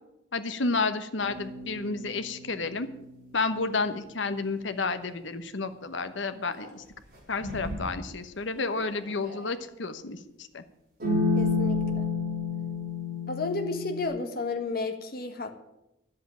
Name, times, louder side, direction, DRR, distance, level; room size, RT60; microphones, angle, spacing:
voice 1, 0.3-2.9 3.3-6.8 7.3-10.6, left 3 dB, 70° left, 10 dB, 1.1 m, -31 dB
sound 1, 1.2-3.5 6.6-6.7 7.4-7.9 8.6-9.4 11.0-14.1, left 3 dB, 50° right, 4.6 m, -31 dB
voice 2, 11.4-12.1 13.3-15.5, left 3 dB, 50° left, 5 dB, 1.6 m, -32 dB
11.0 x 7.9 x 8.9 m, 0.88 s
head